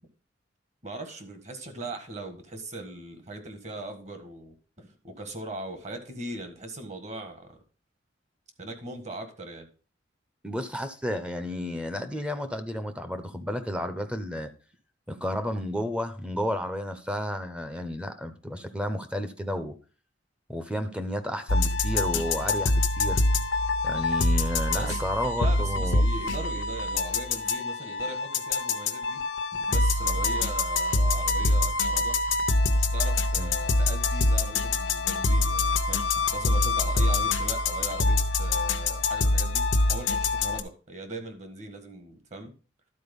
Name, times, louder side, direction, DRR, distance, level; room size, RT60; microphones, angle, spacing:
voice 1, 0.8-7.6 8.6-9.7 24.7-29.2 29.5-32.2 32.7-39.6 39.9-42.5, right 2 dB, 40° right, 1.6 m, -40 dB
voice 2, 10.4-14.5 15.1-19.7 20.5-23.2 23.8-26.0 33.4-33.5, left 1 dB, 5° right, 0.7 m, -32 dB
sound 1, 21.5-40.6, left 2 dB, 85° left, 0.9 m, -25 dB
11.5 x 4.4 x 5.3 m
head